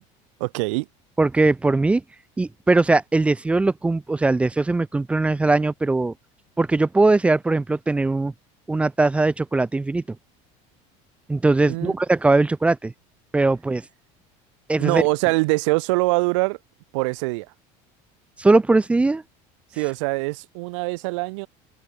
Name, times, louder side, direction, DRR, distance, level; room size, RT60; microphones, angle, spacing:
voice 1, 0.4-0.8 11.7-11.9 14.8-16.6 16.9-17.5 19.8-21.5, right 27 dB, 80° right, 3.0 m, -23 dB
voice 2, 1.2-2.0 2.4-6.1 6.6-8.3 8.7-10.2 11.3-12.9 13.3-13.8 14.7-15.0 18.4-19.2, right 3 dB, 10° right, 1.1 m, -20 dB
open air
cardioid pair, 170°, 15 cm